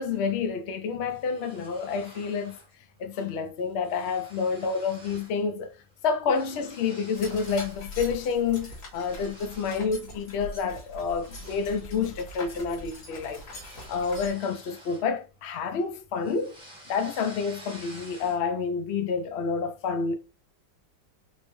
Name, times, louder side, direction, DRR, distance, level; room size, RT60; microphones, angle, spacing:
voice 1, 0.0-2.6 3.0-5.7 6.0-13.4 13.9-16.5 16.9-20.1, left 5 dB, 90° left, 0.5 m, -29 dB
sound 1, 1.1-2.7 3.1-3.3 3.6-5.4 5.7-7.9 8.3-9.9 10.4-10.6 11.0-15.6 15.9-18.6, right 1 dB, 5° right, 0.8 m, -50 dB
sound 2, 7.1-14.3, left 2 dB, 65° left, 2.1 m, -42 dB
4.4 x 2.2 x 3.0 m
omnidirectional pair, 1.9 m